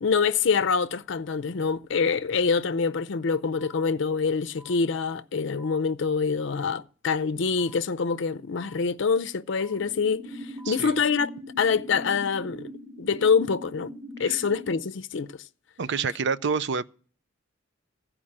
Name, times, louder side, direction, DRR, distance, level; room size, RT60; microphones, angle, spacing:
voice 1, 0.0-11.3 11.6-12.7 13.0-13.9 14.2-15.3, left 5 dB, 70° left, 0.5 m, -25 dB
sound 1, 3.6-3.7 4.6-4.7 5.6-5.8 6.6-6.8 7.6-7.8 8.6-8.8 9.6-9.7 10.6-10.7 11.6-11.7, left 1 dB, 25° right, 1.7 m, -50 dB
sound 2, 9.8-14.8, equal, 5° left, 1.2 m, -41 dB
voice 2, 15.8-16.9, right 5 dB, 65° right, 0.5 m, -28 dB
15.0 x 5.0 x 8.6 m
head